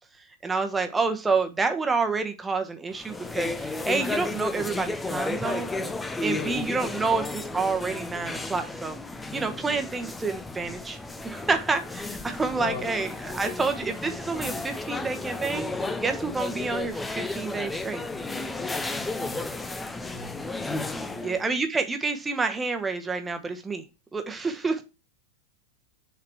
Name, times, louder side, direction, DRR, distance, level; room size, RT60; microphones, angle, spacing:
voice 1, 0.4-5.7 6.2-9.0 9.3-11.0 11.2-18.0 21.2-23.8 24.1-24.8, right 4 dB, 15° right, 1.2 m, -28 dB
sound 1, 2.9-21.4, left 3 dB, 10° left, 0.6 m, -33 dB
voice 2, 6.3-6.7 12.5-13.1 19.2-19.6 20.1-20.4 21.1-21.4, left 4 dB, 40° left, 2.6 m, -39 dB
6.8 x 4.1 x 5.7 m
figure-of-eight pair, 90°, 0 cm